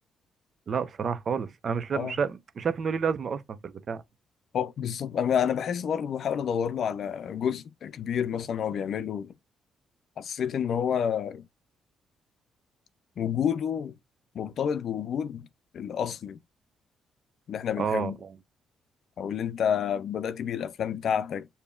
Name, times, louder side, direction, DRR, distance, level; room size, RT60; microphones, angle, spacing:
voice 1, 0.7-4.0 17.8-18.4, right 6 dB, 50° right, 0.7 m, -30 dB
voice 2, 4.5-9.3 10.2-11.4 13.2-13.9 14.3-15.5 15.7-16.4 17.5-18.2 19.2-21.5, left 8 dB, 60° left, 0.5 m, -29 dB
6.8 x 2.8 x 2.4 m
cardioid pair, 90°, 0 cm